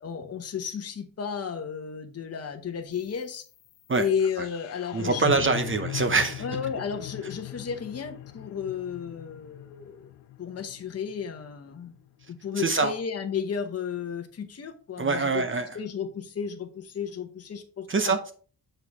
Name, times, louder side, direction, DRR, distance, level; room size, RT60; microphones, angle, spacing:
voice 1, 0.0-3.4 4.0-5.5 6.4-10.1 10.4-11.9 12.3-15.4 15.7-18.1, left 7 dB, 35° left, 0.9 m, -33 dB
sound 1, 2.9-13.0, left 13 dB, 90° left, 0.6 m, -40 dB
voice 2, 4.9-6.4 12.6-12.9 15.0-15.7 17.9-18.3, right 4 dB, 30° right, 0.7 m, -24 dB
6.7 x 4.5 x 3.5 m
cardioid pair, 110°, 40 cm